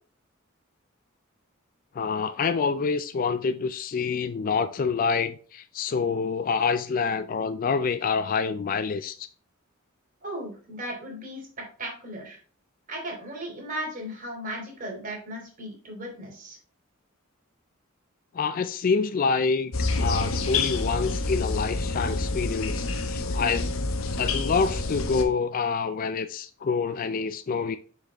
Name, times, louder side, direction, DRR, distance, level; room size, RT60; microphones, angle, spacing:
voice 1, 1.9-9.3 18.3-19.7 20.0-23.8 24.1-27.8, left 5 dB, 40° left, 0.3 m, -27 dB
voice 2, 10.2-12.4 12.9-16.6, right 1 dB, 40° right, 2.8 m, -36 dB
sound 1, 19.7-25.2, left 3 dB, 85° left, 0.9 m, -28 dB
6.3 x 5.2 x 3.4 m
head